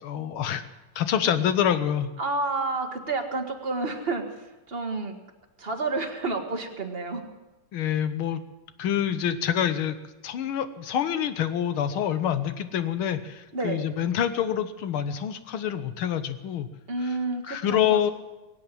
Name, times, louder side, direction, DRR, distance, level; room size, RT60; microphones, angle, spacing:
voice 1, 0.0-0.6 1.0-2.1 7.7-8.4 8.8-10.0 10.2-16.7 17.0-17.2 17.4-18.1, left 9 dB, 75° left, 11 dB, 1.8 m, -26 dB
voice 2, 2.2-5.2 5.6-7.2 13.5-13.8 16.9-18.1, right 3 dB, 30° right, 4 dB, 1.5 m, -30 dB
22.0 x 8.5 x 7.5 m, 1.1 s
omnidirectional pair, 2.4 m